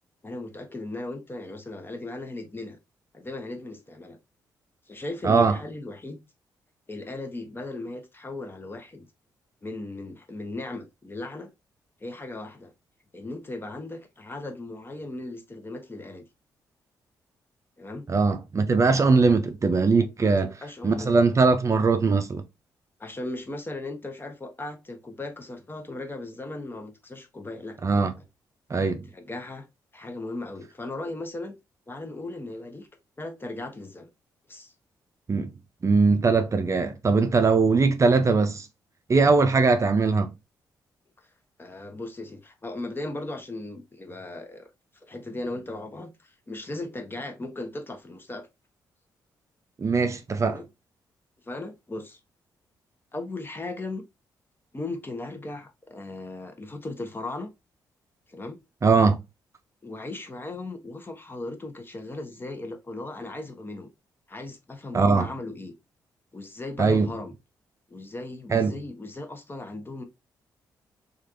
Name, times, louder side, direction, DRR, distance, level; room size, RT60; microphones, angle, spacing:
voice 1, 0.2-2.8 3.1-4.2 4.9-6.2 6.9-9.1 9.6-11.5 12.0-12.7 13.1-16.2 17.8-18.1 19.3-19.4 20.2-21.2 23.0-27.8 29.1-29.7 29.9-31.5 31.9-32.9 33.2-34.1 34.5-34.7 41.6-44.7 45.0-48.5 50.4-50.6 51.4-52.2 53.1-54.0 54.7-57.5 58.3-58.6 59.8-63.9 64.3-65.7 66.3-67.3 67.9-70.0, left 2 dB, 25° left, 0.8 m, -37 dB
voice 2, 5.2-5.6 18.1-20.5 20.8-22.4 27.8-28.1 28.7-29.0 35.3-35.5 35.8-38.7 39.1-40.3 49.8-50.6 58.8-59.2 64.9-65.3 66.8-67.1 68.5-68.8, right 4 dB, 40° right, 0.5 m, -21 dB
3.2 x 2.4 x 2.5 m
supercardioid pair, 55°, 8 cm